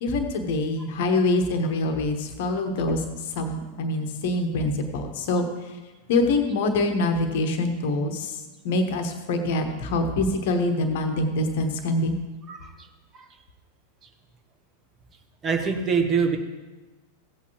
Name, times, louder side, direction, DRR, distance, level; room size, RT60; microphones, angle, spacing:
voice 1, 0.0-5.5 6.1-8.4 8.6-12.1, left 2 dB, 50° left, 6 dB, 1.2 m, -25 dB
voice 2, 15.4-16.4, right 5 dB, 25° right, 4 dB, 1.2 m, -24 dB
15.5 x 8.4 x 3.1 m, 1.2 s
figure-of-eight pair, 90°, 0 cm